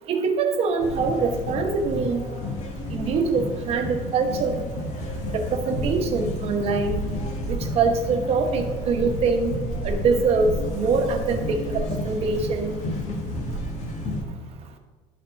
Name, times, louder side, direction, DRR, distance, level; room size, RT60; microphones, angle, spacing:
voice 1, 0.0-2.2 2.9-4.6 5.3-7.0 7.5-9.5 9.8-12.7, right 4 dB, 45° right, 4 dB, 1.2 m, -24 dB
sound 1, 0.8-14.2, left 1 dB, 50° left, 1.7 m, -31 dB
12.0 x 5.6 x 4.0 m, 1.3 s
cardioid pair, 160°, 15 cm